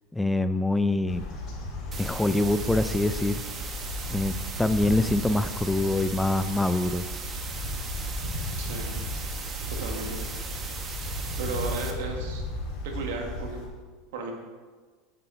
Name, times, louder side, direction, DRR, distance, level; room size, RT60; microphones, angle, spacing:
voice 1, 0.1-1.2 2.0-3.4 4.1-7.1, left 2 dB, 5° left, 11 dB, 0.4 m, -25 dB
sound 1, 1.1-13.7, left 1 dB, 50° left, 3.1 m, -35 dB
sound 2, 1.9-11.9, right 5 dB, 30° right, 1.2 m, -39 dB
voice 2, 8.6-8.9 9.7-10.2 11.4-12.4 12.8-13.6 14.1-14.3, right 4 dB, 80° right, 2 dB, 1.8 m, -34 dB
8.6 x 7.6 x 4.5 m, 1.4 s
supercardioid pair, 115°, 0 cm